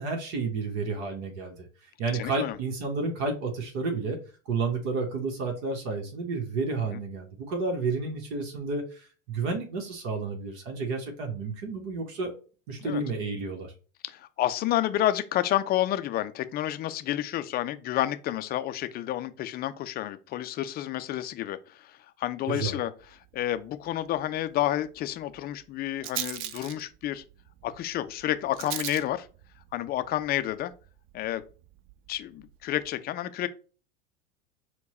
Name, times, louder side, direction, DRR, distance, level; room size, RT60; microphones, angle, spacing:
voice 1, 0.0-12.3 12.7-13.7 22.5-22.8, right 3 dB, 60° right, 1.2 m, -31 dB
voice 2, 2.2-2.6 6.9-7.0 12.8-13.0 14.0-22.9 23.3-27.2 27.6-29.3 29.7-30.7 31.1-31.4 32.1-33.5, left 13 dB, 25° left, 0.4 m, -30 dB
Rattle, 23.0-32.9, right 12 dB, 35° right, 0.4 m, -43 dB
4.4 x 2.3 x 4.1 m
hypercardioid pair, 85°, 37 cm